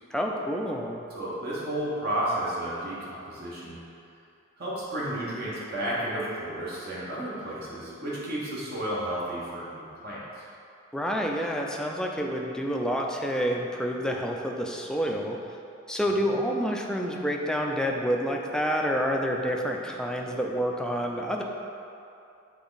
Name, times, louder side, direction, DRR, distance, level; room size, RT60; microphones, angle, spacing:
voice 1, 0.1-1.0 10.9-15.4 15.9-21.4, equal, 5° left, 0 dB, 0.4 m, -28 dB
voice 2, 1.1-3.8 4.6-10.2, right 1 dB, 50° right, -7 dB, 1.4 m, -32 dB
7.8 x 3.6 x 4.0 m, 2.7 s
head